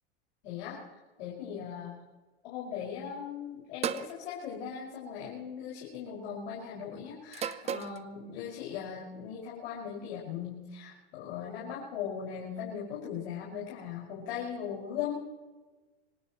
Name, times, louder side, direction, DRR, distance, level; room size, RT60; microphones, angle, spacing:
voice 1, 0.4-0.8 1.2-2.0 2.4-15.1, left 8 dB, 70° left, -6 dB, 5.9 m, -39 dB
sound 1, 3.8-4.2 5.3-5.7 7.3-8.0, right 8 dB, 20° right, 0.6 m, -34 dB
26.0 x 16.5 x 3.1 m, 1.3 s
supercardioid pair, 125°, 33 cm